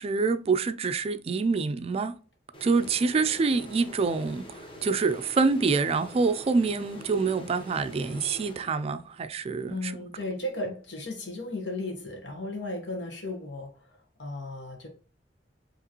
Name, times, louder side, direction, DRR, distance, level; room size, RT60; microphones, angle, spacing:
voice 1, 0.0-2.1 2.6-10.1, right 4 dB, 35° right, 0.3 m, -26 dB
sound 1, 2.5-9.2, equal, 30° left, 0.9 m, -45 dB
voice 2, 9.7-13.7 14.2-14.9, left 2 dB, 85° left, 1.3 m, -35 dB
4.9 x 3.0 x 2.9 m
head